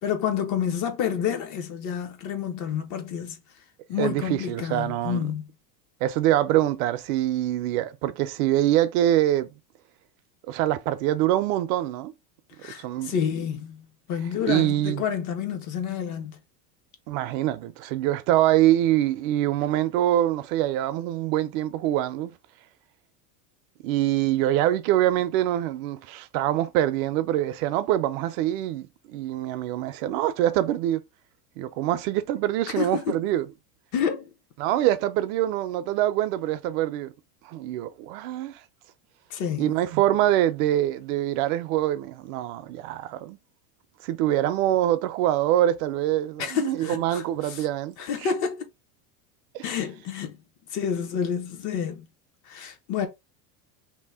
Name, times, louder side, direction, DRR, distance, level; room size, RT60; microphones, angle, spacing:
voice 1, 0.0-3.4 3.9-5.4 12.6-16.4 32.8-33.1 33.9-34.3 39.3-39.7 46.4-47.6 48.0-48.6 49.6-50.3 50.7-52.1 52.5-53.1, left 8 dB, 40° left, 0.8 m, -29 dB
voice 2, 4.0-5.3 6.0-9.5 10.5-12.1 12.8-13.1 14.5-15.0 17.1-22.3 23.8-31.0 31.6-33.5 34.6-37.1 37.4-38.6 39.6-43.4 44.0-47.9 48.2-48.3 49.5-49.6, right 13 dB, 60° right, 0.6 m, -24 dB
2.8 x 2.1 x 3.4 m
supercardioid pair, 120°, 47 cm